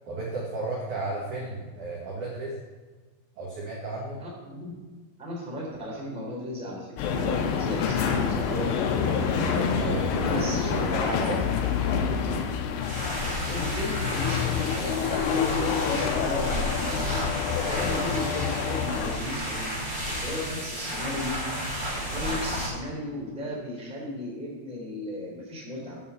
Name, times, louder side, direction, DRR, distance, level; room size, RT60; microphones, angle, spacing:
voice 1, 0.1-2.6 3.4-4.2 9.8-11.4 17.6-17.7 20.1-20.2, right 2 dB, 80° right, -4 dB, 1.7 m, -34 dB
voice 2, 4.2-4.7 5.2-9.5 10.2-10.8 13.4-17.2 17.6-19.8 20.1-21.4 21.9-26.0, left 1 dB, ahead, -5 dB, 1.6 m, -35 dB
sound 1, 7.0-19.2, left 7 dB, 90° left, 3.2 m, -29 dB
sound 2, 7.0-12.4, left 5 dB, 70° left, 3.1 m, -28 dB
sound 3, 12.8-22.7, equal, 15° right, 3.0 m, -32 dB
9.6 x 5.7 x 6.8 m, 1.3 s
omnidirectional pair, 5.8 m